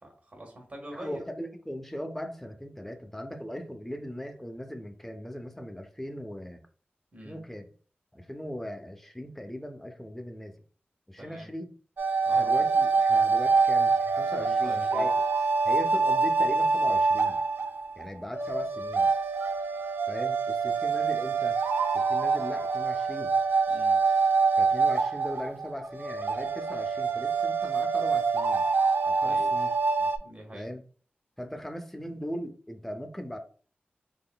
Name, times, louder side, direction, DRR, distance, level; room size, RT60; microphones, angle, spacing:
voice 1, 0.0-1.2 7.1-7.4 11.2-11.5 12.2-12.5 14.4-15.1 23.7-24.0 29.2-29.5 30.2-30.7, right 1 dB, 45° right, 1 dB, 1.3 m, -44 dB
voice 2, 0.9-6.6 7.2-7.7 8.1-10.6 11.1-11.7 12.3-15.1 15.6-17.4 18.0-19.1 20.1-21.6 21.9-23.3 24.6-28.7 29.0-29.7 30.0-30.1 30.5-30.8 31.4-33.4, equal, 5° left, 6 dB, 0.5 m, -38 dB
sound 1, 12.0-30.2, right 4 dB, 75° right, 0.3 m, -25 dB
3.7 x 3.5 x 2.2 m, 0.41 s
wide cardioid pair, 105°, 4 cm